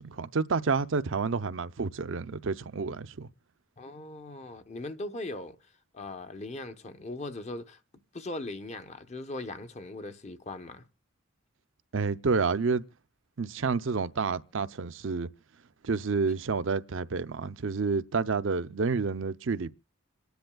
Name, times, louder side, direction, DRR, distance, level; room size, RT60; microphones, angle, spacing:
voice 1, 0.0-3.3 11.9-12.8 13.4-15.3 15.8-19.7, right 4 dB, 60° right, 0.6 m, -29 dB
voice 2, 3.8-5.6 5.9-7.8 8.1-10.9, left 2 dB, 30° left, 0.8 m, -39 dB
26.5 x 10.5 x 2.3 m
head